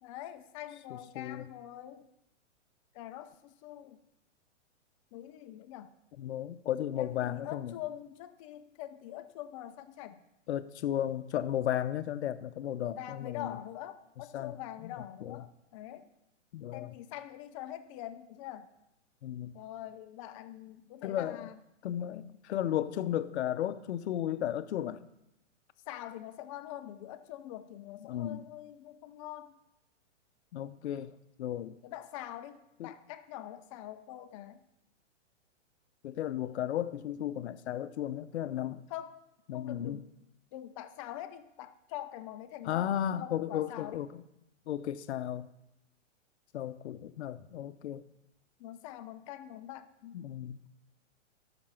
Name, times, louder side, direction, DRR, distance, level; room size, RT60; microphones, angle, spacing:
voice 1, 0.0-2.1 2.9-4.0 5.1-5.9 7.0-10.2 12.9-16.1 16.7-18.7 19.5-21.6 25.9-29.5 31.8-34.6 38.9-39.2 39.5-40.1 40.5-44.0 48.6-50.2, left 12 dB, 25° left, 11 dB, 0.5 m, -44 dB
voice 2, 0.9-1.5 6.2-7.7 10.5-13.5 14.3-14.5 14.8-14.9 15.2-15.4 16.5-16.9 19.2-19.5 21.0-21.5 21.8-25.0 28.0-28.4 30.5-31.1 31.4-31.8 32.8-32.9 36.0-38.8 39.5-40.0 42.6-44.2 44.7-45.5 46.5-48.0 50.1-50.6, left 11 dB, 60° left, 13 dB, 0.7 m, -34 dB
13.0 x 6.0 x 5.7 m, 0.85 s
hypercardioid pair, 135°, 37 cm